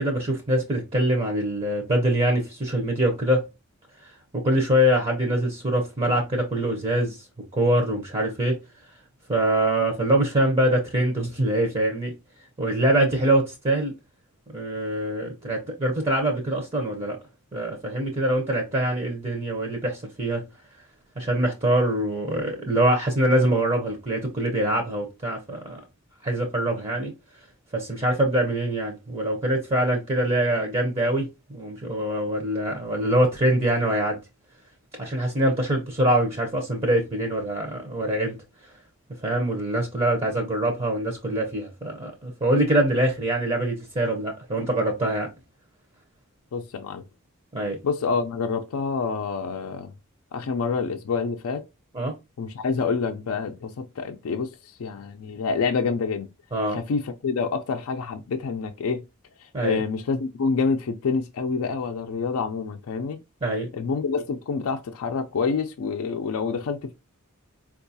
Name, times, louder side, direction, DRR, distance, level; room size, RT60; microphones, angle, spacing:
voice 1, 0.0-3.4 4.3-7.2 7.5-8.6 9.3-12.1 12.6-13.9 14.5-17.2 17.5-20.4 21.2-25.8 26.2-27.1 27.7-34.2 35.0-38.3 39.2-45.3 47.5-47.8 51.9-52.1 56.5-56.8 59.5-59.8 63.4-63.7, right 1 dB, 30° right, 0.6 m, -24 dB
voice 2, 46.5-47.0 47.8-49.9 50.3-51.7 52.4-56.3 56.7-59.0 59.6-63.2 63.7-66.9, left 5 dB, 75° left, 0.4 m, -27 dB
4.5 x 2.3 x 2.6 m
head